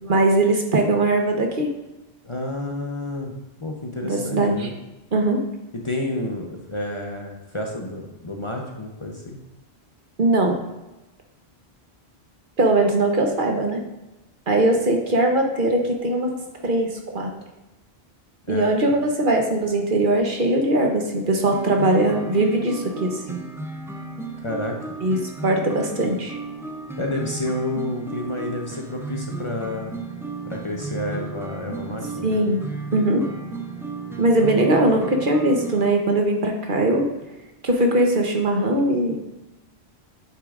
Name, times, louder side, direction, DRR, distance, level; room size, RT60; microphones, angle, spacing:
voice 1, 0.0-1.7 4.0-4.7 5.1-5.4 10.2-10.6 12.6-13.8 14.5-16.3 16.6-17.3 18.5-23.4 25.0-26.4 32.2-32.6 32.9-33.3 34.2-37.1 37.6-39.2, right 2 dB, 55° right, 2 dB, 1.1 m, -20 dB
voice 2, 2.2-3.3 3.6-4.7 5.8-9.4 18.5-18.8 24.4-24.8 27.0-29.9 30.5-32.3, left 1 dB, 30° left, 0 dB, 0.8 m, -30 dB
sound 1, 21.5-35.9, right 3 dB, 5° right, 0.4 m, -34 dB
8.6 x 6.7 x 2.5 m, 1.0 s
omnidirectional pair, 1.1 m